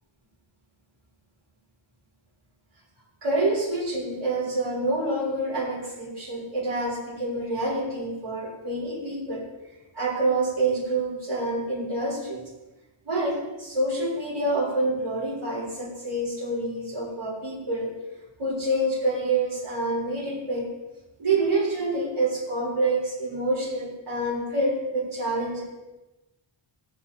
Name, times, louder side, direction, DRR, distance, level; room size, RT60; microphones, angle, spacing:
voice 1, 3.2-9.4 9.9-12.4 13.1-18.0 18.4-20.7 21.2-25.6, right 2 dB, 90° right, -6 dB, 3.7 m, -27 dB
16.0 x 9.8 x 2.8 m, 1.1 s
wide cardioid pair, 120°, 49 cm